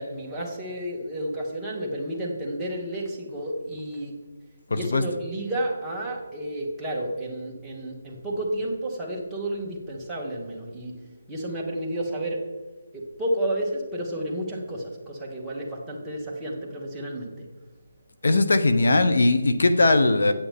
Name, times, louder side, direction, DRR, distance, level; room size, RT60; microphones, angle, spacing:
voice 1, 0.0-4.2 4.7-11.0 11.3-12.5 12.9-17.4, right 1 dB, 5° right, -5 dB, 1.4 m, -31 dB
voice 2, 4.7-5.0 18.2-20.3, left 2 dB, 70° left, 9 dB, 0.8 m, -19 dB
8.8 x 8.7 x 3.6 m, 1.3 s
figure-of-eight pair, 165°, 0 cm